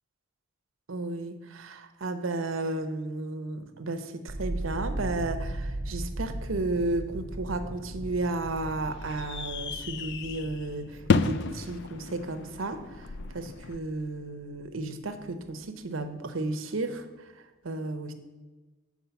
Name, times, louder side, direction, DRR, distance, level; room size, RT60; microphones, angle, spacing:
voice 1, 0.9-18.1, right 2 dB, 85° right, 8 dB, 0.8 m, -33 dB
sound 1, 4.3-14.3 14.6-15.3, right 1 dB, 40° right, 0.7 m, -38 dB
Firework single shot, 7.8-13.8, left 4 dB, 60° left, 0.4 m, -32 dB
7.1 x 4.8 x 6.9 m, 1.3 s
head